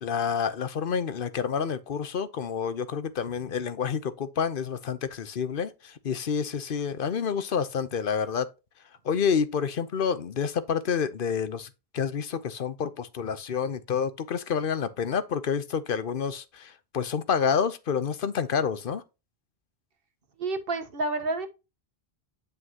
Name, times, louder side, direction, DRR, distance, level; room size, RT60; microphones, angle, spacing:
voice 1, 0.0-8.5 9.0-11.7 11.9-19.0, left 6 dB, 60° left, 1.0 m, -28 dB
voice 2, 20.4-21.5, right 2 dB, 60° right, 1.3 m, -29 dB
9.6 x 5.6 x 2.9 m
omnidirectional pair, 1.1 m